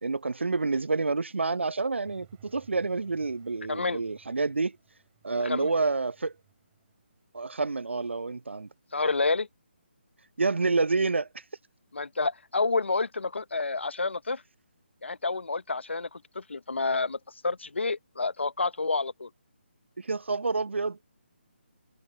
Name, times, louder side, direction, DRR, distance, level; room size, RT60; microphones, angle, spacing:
voice 1, 0.0-4.8 5.2-6.3 7.3-8.7 10.4-11.3 20.0-21.0, right 3 dB, 80° right, 0.6 m, -28 dB
sound 1, 2.0-7.5, right 27 dB, 20° right, 5.6 m, -61 dB
voice 2, 3.7-4.0 5.4-5.7 8.9-9.5 11.9-14.4 15.0-19.3, left 3 dB, 75° left, 0.9 m, -29 dB
figure-of-eight pair, 150°, 6 cm